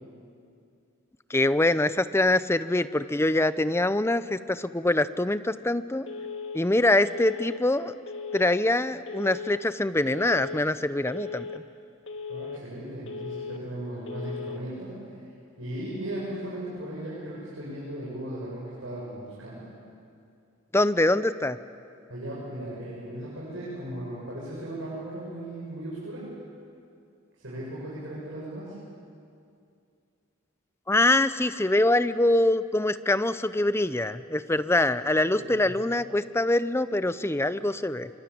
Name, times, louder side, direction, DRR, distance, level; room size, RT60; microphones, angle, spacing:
voice 1, 1.3-6.1 6.5-7.9 8.3-11.6 20.7-21.6 30.9-38.1, left 1 dB, 10° left, 13 dB, 0.6 m, -24 dB
Telephone, 6.1-6.6 7.1-7.6 8.1-8.6 9.1-9.6 10.1-10.6 11.1-11.6 12.1-12.6 13.1-13.6 14.1-14.6, left 5 dB, 65° left, 1.9 m, -37 dB
voice 2, 12.3-14.9 15.6-19.7 22.1-26.3 27.4-28.7 35.3-35.7, right 1 dB, 70° right, -7 dB, 7.5 m, -37 dB
25.0 x 24.5 x 8.6 m, 2.4 s
head